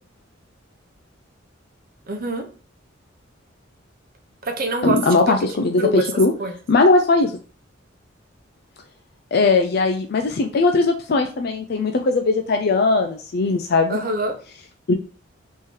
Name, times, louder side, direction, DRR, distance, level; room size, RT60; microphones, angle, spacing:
voice 1, 2.1-2.5 4.4-5.3 5.8-6.1 6.4-6.6 13.9-14.3, right 1 dB, 45° right, 5 dB, 0.8 m, -25 dB
voice 2, 4.8-6.3 6.7-7.3 9.3-14.0 14.9-15.0, left 3 dB, 55° left, 4 dB, 0.4 m, -19 dB
3.7 x 3.1 x 4.3 m, 0.39 s
head